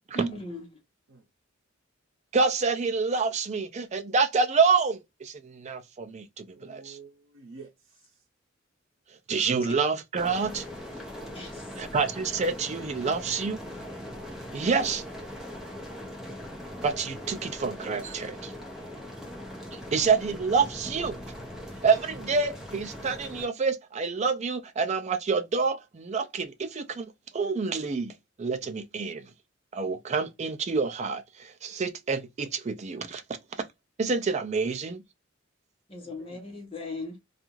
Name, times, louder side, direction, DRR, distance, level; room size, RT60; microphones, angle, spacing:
voice 1, 0.1-0.7 9.6-9.7 11.3-11.7 35.9-37.2, equal, 30° left, 1.0 m, -37 dB
voice 2, 2.3-7.0 9.3-10.6 11.8-13.6 14.5-15.0 16.8-18.5 19.7-21.2 21.8-27.1 27.3-29.3 29.7-33.2 34.0-35.0, right 4 dB, 35° right, 0.4 m, -27 dB
voice 3, 6.5-8.2 36.0-36.7, right 4 dB, 85° right, 0.6 m, -50 dB
sound 1, 10.1-23.5, left 1 dB, ahead, 0.7 m, -40 dB
2.5 x 2.4 x 3.0 m
head